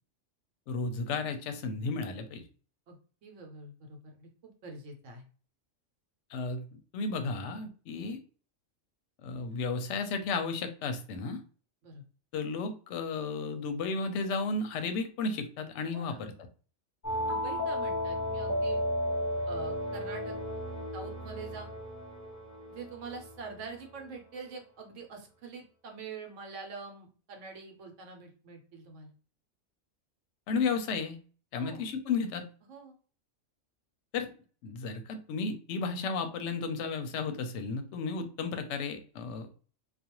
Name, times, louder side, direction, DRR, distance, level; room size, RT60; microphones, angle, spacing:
voice 1, 0.7-2.4 6.3-6.7 6.9-8.2 9.2-11.4 12.3-16.3 30.5-31.2 31.5-32.5 34.1-34.3 34.6-39.5, left 4 dB, 70° left, 7 dB, 0.8 m, -33 dB
voice 2, 2.9-5.3 11.8-12.0 15.9-16.2 17.1-18.8 19.5-20.4 20.9-21.7 22.7-29.1 31.6-31.9 32.7-33.0, right 4 dB, 70° right, 3 dB, 1.0 m, -45 dB
sound 1, 17.0-23.5, left 1 dB, 25° left, 0.4 m, -34 dB
2.4 x 2.2 x 2.9 m, 0.39 s
omnidirectional pair, 1.3 m